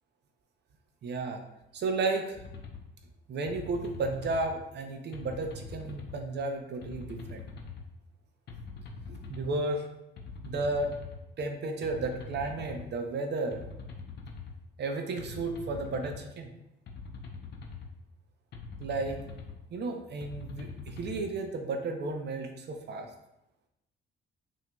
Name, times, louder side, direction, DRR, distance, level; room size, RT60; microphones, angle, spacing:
voice 1, 1.0-1.4 1.7-2.4 3.3-7.4 9.1-9.8 10.4-10.9 11.4-13.6 14.8-16.5 18.8-19.2 19.7-23.1, right 3 dB, 60° right, 4 dB, 0.6 m, -33 dB
sound 1, 2.4-2.8 3.5-4.5 5.1-6.2 6.8-7.8 8.5-9.5 10.2-11.2 11.8-12.9 13.5-14.5 15.2-16.2 16.9-17.9 18.5-19.6 20.2-21.2, left 4 dB, 60° left, 0.7 m, -43 dB
5.6 x 2.7 x 2.2 m, 0.85 s
cardioid pair, 90°, 20 cm